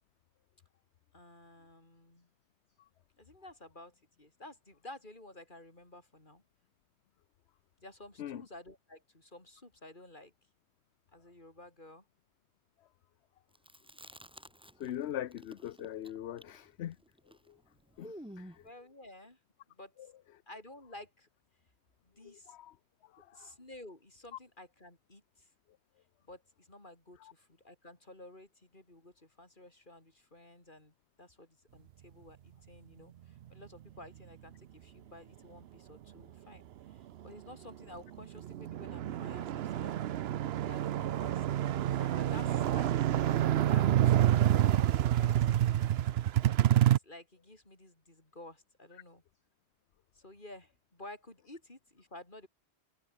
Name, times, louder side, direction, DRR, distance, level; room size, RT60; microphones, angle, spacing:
voice 1, 1.1-2.3 3.2-6.4 7.8-10.3 11.1-12.1 18.3-19.4 19.7-20.0 20.5-21.3 22.0-22.6 23.3-25.5 26.2-40.0 40.5-43.4 43.7-43.9 44.3-45.8 46.6-49.2 50.1-52.5, left 1 dB, 45° left, 5.3 m, -52 dB
Chewing mastication, 13.5-15.0 15.3-18.7, equal, 5° right, 2.4 m, -51 dB
voice 2, 14.8-17.0 17.5-17.6 18.0-18.6 22.2-22.8 23.0-23.5 24.3-24.4 27.2-27.3 44.7-44.9, left 11 dB, 75° left, 0.9 m, -42 dB
sound 1, 37.7-37.8 38.1-47.0, right 11 dB, 70° right, 0.8 m, -28 dB
omnidirectional pair, 1.1 m